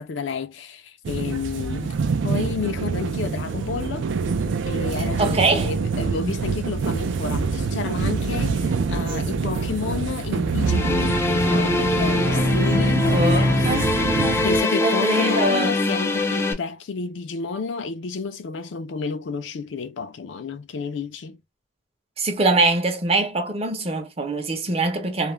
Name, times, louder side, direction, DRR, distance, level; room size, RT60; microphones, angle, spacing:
voice 1, 0.0-1.9 2.2-4.1 4.7-21.4, left 5 dB, 80° left, 0.4 m, -31 dB
sound 1, 1.0-14.6, right 4 dB, 85° right, 0.4 m, -26 dB
voice 2, 5.2-5.7 13.1-14.4 14.8-15.7 22.2-25.3, right 2 dB, 35° right, 0.6 m, -23 dB
sound 2, 10.7-16.5, left 2 dB, 15° left, 0.3 m, -22 dB
2.3 x 2.0 x 3.0 m
head